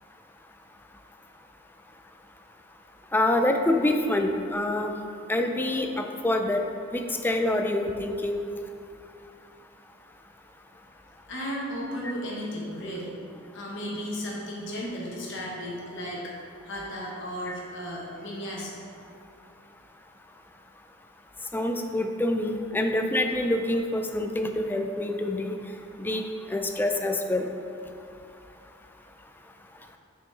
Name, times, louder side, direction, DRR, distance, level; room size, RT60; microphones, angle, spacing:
voice 1, 3.1-4.9 5.3-6.6 6.9-8.4 17.5-17.6 21.5-25.6 26.0-26.2 26.5-27.4, left 1 dB, 10° left, 4 dB, 0.3 m, -26 dB
voice 2, 11.3-13.2 13.5-16.3 16.6-18.8, equal, 65° left, -4 dB, 1.3 m, -34 dB
6.0 x 5.2 x 3.3 m, 2.5 s
head